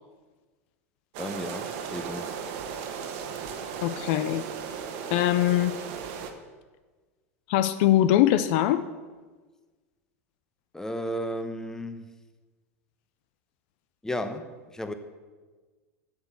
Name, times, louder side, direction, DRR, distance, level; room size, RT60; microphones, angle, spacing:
sound 1, 1.1-6.3, right 7 dB, 55° right, 1.2 m, -36 dB
voice 1, 1.2-2.3 10.7-12.1 14.0-14.9, equal, 5° left, 9 dB, 0.9 m, -34 dB
voice 2, 3.8-4.4 5.1-5.8 7.5-8.8, left 13 dB, 55° left, 13 dB, 0.5 m, -22 dB
7.9 x 7.1 x 8.1 m, 1.4 s
hypercardioid pair, 85°, 8 cm